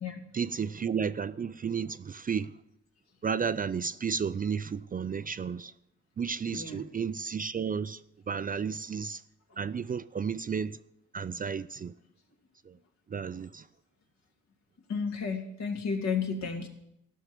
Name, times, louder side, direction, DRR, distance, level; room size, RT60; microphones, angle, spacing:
voice 1, 0.3-2.5 3.2-5.7 6.2-8.0 8.3-9.2 9.6-10.8 11.1-11.9 12.7-12.8 13.1-13.6, right 6 dB, 30° right, 0.4 m, -32 dB
voice 2, 6.5-6.8 14.9-16.7, left 5 dB, 60° left, 2.6 m, -32 dB
15.0 x 6.4 x 9.3 m
cardioid pair, 90°, 30 cm